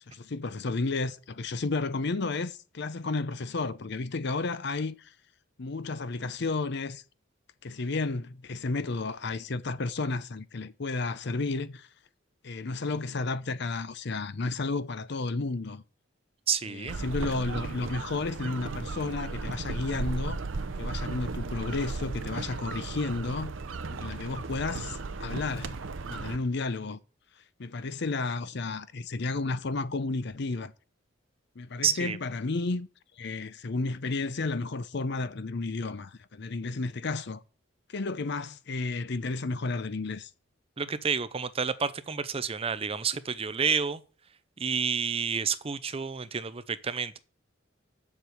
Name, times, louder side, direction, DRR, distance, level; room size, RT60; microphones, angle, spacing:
voice 1, 0.1-5.1 5.6-7.0 7.6-11.9 12.4-15.8 16.7-20.4 20.8-23.5 23.9-25.8 26.1-27.0 27.6-30.7 31.6-32.9 33.2-37.4 37.9-40.3, left 3 dB, 60° left, 0.7 m, -32 dB
voice 2, 16.5-17.0 31.8-32.2 40.8-44.0 44.6-47.2, right 6 dB, 30° right, 0.6 m, -29 dB
sound 1, 16.9-26.4, right 3 dB, 80° right, 0.6 m, -35 dB
7.3 x 6.7 x 7.9 m
head